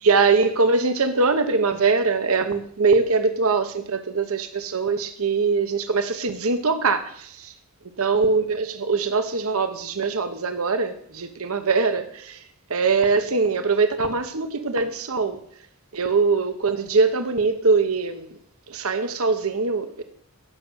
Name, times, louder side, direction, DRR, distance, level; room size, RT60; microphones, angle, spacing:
voice 1, 0.0-7.5 8.0-12.4 12.7-15.4 15.9-18.3 18.7-20.0, right 4 dB, 75° right, 9 dB, 1.0 m, -22 dB
16.5 x 6.3 x 6.4 m, 0.62 s
head